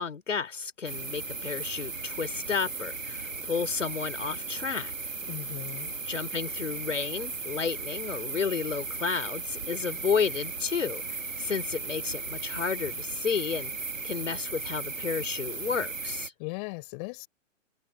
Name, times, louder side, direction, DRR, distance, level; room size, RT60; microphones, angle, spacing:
voice 1, 0.0-4.9 6.1-13.7 14.0-16.3, left 6 dB, 70° left, 3.6 m, -32 dB
sound 1, 0.8-16.3, right 4 dB, 85° right, 1.6 m, -36 dB
voice 2, 5.3-5.9 16.4-17.3, left 35 dB, 35° left, 4.5 m, -38 dB
figure-of-eight pair, 115°, 38 cm